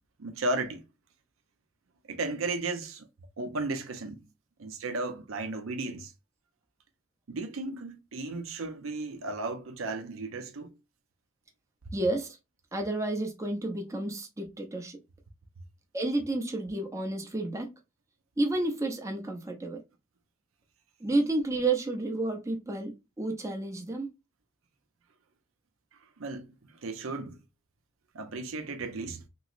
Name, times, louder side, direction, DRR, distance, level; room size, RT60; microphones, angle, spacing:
voice 1, 0.2-0.8 2.1-3.1 3.4-4.2 4.6-6.1 7.3-10.7 26.2-27.4 28.1-29.2, right 2 dB, 70° right, 0.6 m, -34 dB
voice 2, 11.9-12.4 12.7-15.0 15.9-17.7 18.4-19.8 21.0-24.1, right 2 dB, 15° right, 0.6 m, -31 dB
3.0 x 3.0 x 2.4 m
head